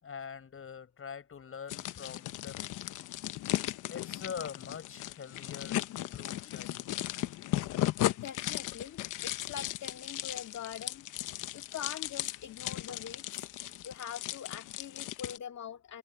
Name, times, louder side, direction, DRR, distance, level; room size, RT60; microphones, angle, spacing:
voice 1, 0.0-2.7 3.9-7.0, left 7 dB, 45° left, 7.7 m, -44 dB
sound 1, 1.7-15.4, left 15 dB, 90° left, 1.1 m, -36 dB
voice 2, 8.2-11.1 11.5-13.5 13.8-16.0, left 8 dB, 60° left, 2.4 m, -43 dB
cardioid pair, 90°, 30 cm